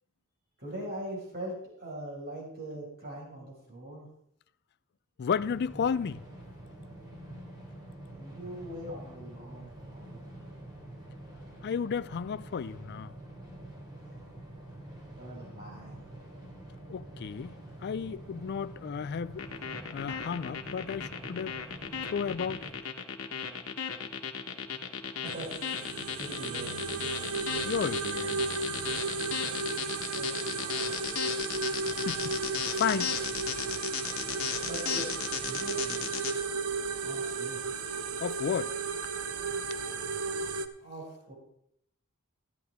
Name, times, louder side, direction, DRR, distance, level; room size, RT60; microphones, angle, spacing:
voice 1, 0.6-4.1 8.1-10.2 15.2-16.1 25.2-25.5 26.2-26.7 30.0-30.9 34.6-36.1 37.0-37.7 40.8-41.3, right 1 dB, 45° right, 5.3 m, -42 dB
voice 2, 5.2-6.3 11.6-13.1 16.9-17.6 17.8-19.5 19.9-21.6 22.1-22.7 27.6-28.4 32.0-32.4 32.7-33.1 38.2-38.8, left 6 dB, 50° left, 0.3 m, -33 dB
sound 1, 5.3-22.7, right 1 dB, 20° right, 2.9 m, -47 dB
sound 2, 19.4-36.3, left 7 dB, 65° left, 1.3 m, -35 dB
sound 3, 25.3-40.7, right 4 dB, 80° right, 0.7 m, -34 dB
14.0 x 11.5 x 3.6 m
head